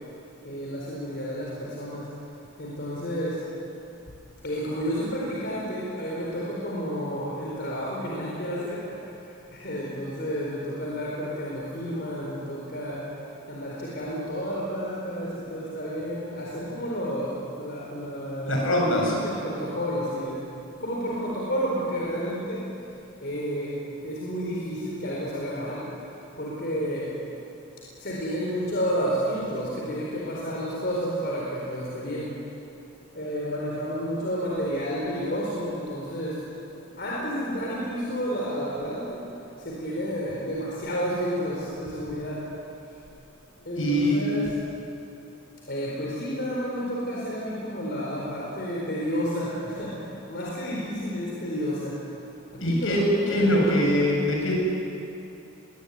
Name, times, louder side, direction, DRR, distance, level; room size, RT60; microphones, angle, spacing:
voice 1, 0.4-2.1 2.6-3.4 4.4-8.8 9.5-13.0 13.5-20.4 20.8-22.6 23.2-23.8 24.0-25.8 26.4-27.1 28.0-32.2 33.1-36.3 37.0-39.2 39.6-42.4 43.6-44.6 45.7-50.0 50.3-51.9 52.6-53.8, equal, 50° left, -5 dB, 4.4 m, -31 dB
voice 2, 18.5-19.1 43.8-44.2 52.6-53.0 53.3-54.5, left 1 dB, 70° left, -2 dB, 7.1 m, -23 dB
21.5 x 20.5 x 9.5 m, 2.8 s
head